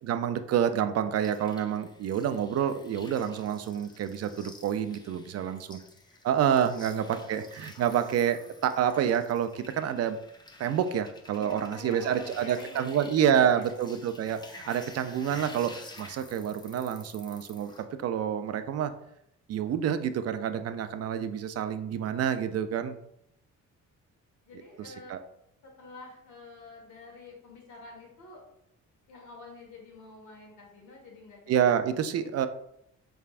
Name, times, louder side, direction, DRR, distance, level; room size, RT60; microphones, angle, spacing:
voice 1, 0.0-5.8 6.2-10.2 10.6-18.9 19.5-23.0 24.8-25.2 31.5-32.5, right 9 dB, 55° right, 10 dB, 0.5 m, -28 dB
sound 1, 1.2-17.8, left 2 dB, 15° left, 0.5 m, -51 dB
voice 2, 5.9-6.2 6.6-7.4 11.3-13.7 24.4-25.2 25.6-28.4 29.1-31.7 32.4-32.5, left 3 dB, 80° left, 0 dB, 1.5 m, -48 dB
4.4 x 3.4 x 2.4 m, 0.76 s
cardioid pair, 90°, 30 cm